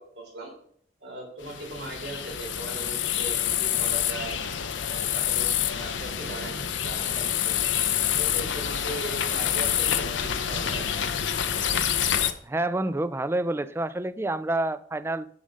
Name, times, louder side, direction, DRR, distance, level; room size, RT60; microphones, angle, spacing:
voice 1, 0.2-0.5 1.0-4.3 4.8-7.7 8.2-10.8, right 1 dB, 75° right, -2 dB, 3.4 m, -39 dB
sound 1, 1.4-12.3, left 9 dB, 90° left, 0.6 m, -27 dB
voice 2, 12.4-15.3, right 2 dB, 15° right, 15 dB, 0.3 m, -28 dB
7.2 x 5.3 x 6.4 m, 0.62 s
head